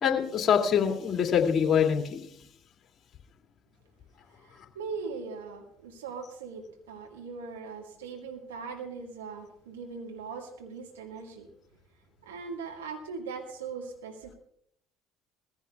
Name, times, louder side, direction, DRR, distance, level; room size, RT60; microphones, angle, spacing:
voice 1, 0.0-2.2, left 7 dB, 45° left, 3 dB, 2.5 m, -24 dB
voice 2, 4.4-11.5 12.2-14.3, right 5 dB, 90° right, 2 dB, 1.8 m, -40 dB
21.0 x 15.5 x 2.4 m, 0.71 s
hypercardioid pair, 60°, 0 cm